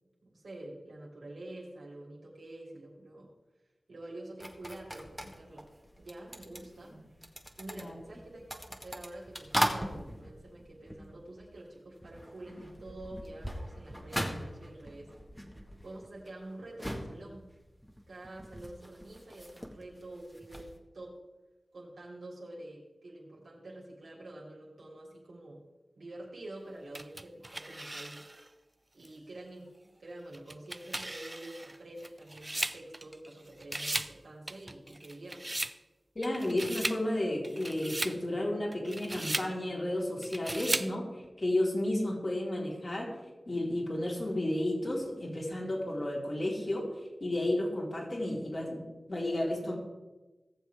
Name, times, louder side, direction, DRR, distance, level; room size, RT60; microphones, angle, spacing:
voice 1, 0.2-3.3 3.9-5.7 6.0-6.9 7.6-15.1 15.8-17.5 18.1-21.1 21.7-25.6 25.9-28.2 28.9-29.7 30.0-35.6, right 1 dB, 85° right, -5 dB, 3.3 m, -47 dB
sound 1, 4.4-11.7 12.0-20.7, equal, 5° left, 1.8 m, -40 dB
sound 2, 26.9-28.5 29.0-29.1 30.3-33.3 33.6-34.2 34.5-35.8 36.2-37.0 37.4-38.2 38.7-39.5 40.2-40.9, right 1 dB, 25° right, 0.5 m, -37 dB
voice 2, 36.2-41.1 41.4-43.1 43.5-46.8 47.2-48.8 49.1-49.8, left 1 dB, 45° left, -3 dB, 4.0 m, -32 dB
18.5 x 7.3 x 3.6 m, 1.1 s
cardioid pair, 50°, 0 cm